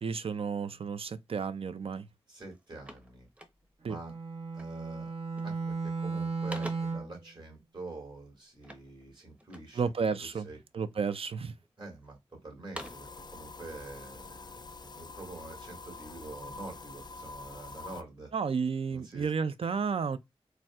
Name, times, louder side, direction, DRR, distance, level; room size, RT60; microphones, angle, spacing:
voice 1, 0.0-2.1 3.8-4.0 9.8-10.5 10.7-11.5 18.3-20.2, right 5 dB, 60° right, 0.4 m, -32 dB
sound 1, 1.9-2.1 2.4-3.9 4.6-4.9 5.2-5.7 6.1-7.1 8.6-9.8 10.3-11.0 11.5-12.1 12.5-13.2, right 1 dB, 10° right, 0.8 m, -47 dB
voice 2, 2.3-3.3 3.8-4.1 4.5-5.1 5.4-9.8 10.2-10.6 11.8-18.3 18.9-19.3, right 2 dB, 45° right, 2.0 m, -46 dB
Bowed string instrument, 3.8-7.2, right 4 dB, 80° right, 1.0 m, -35 dB
sound 2, 12.8-18.0, left 3 dB, 40° left, 0.4 m, -46 dB
4.0 x 2.2 x 2.3 m
cardioid pair, 45°, 11 cm